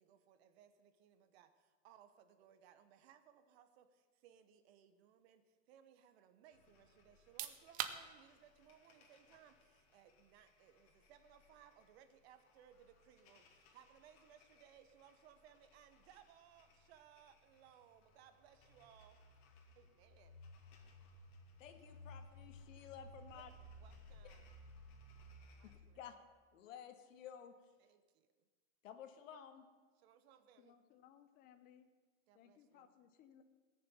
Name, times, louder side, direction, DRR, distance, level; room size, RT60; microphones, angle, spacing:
voice 1, 0.0-19.2 19.7-20.4 23.3-24.5 25.5-26.0 27.8-28.5 30.0-30.8 32.3-32.9, right 9 dB, 55° right, 10 dB, 1.2 m, -65 dB
sound 1, 6.5-25.8, left 1 dB, 50° left, 2.5 m, -61 dB
sound 2, 7.1-19.8, right 11 dB, 25° right, 0.5 m, -54 dB
voice 2, 21.6-23.5 25.6-26.1 26.5-27.5 28.8-29.6, left 9 dB, 80° left, 7 dB, 1.7 m, -54 dB
voice 3, 30.6-31.9 32.3-33.4, left 9 dB, 25° left, 9 dB, 0.7 m, -64 dB
18.0 x 6.8 x 7.1 m, 1.4 s
supercardioid pair, 165°, 39 cm